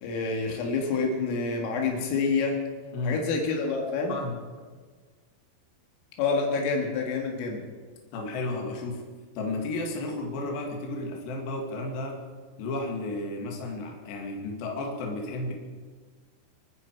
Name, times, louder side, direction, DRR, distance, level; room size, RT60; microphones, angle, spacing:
voice 1, 0.0-2.6 3.0-4.1 6.2-7.6, left 4 dB, 85° left, 1 dB, 4.7 m, -27 dB
voice 2, 2.9-3.2 4.1-4.4 8.1-9.0 9.4-12.2 12.6-15.5, left 2 dB, 65° left, 1 dB, 4.0 m, -33 dB
28.0 x 9.7 x 4.7 m, 1.5 s
omnidirectional pair, 5.7 m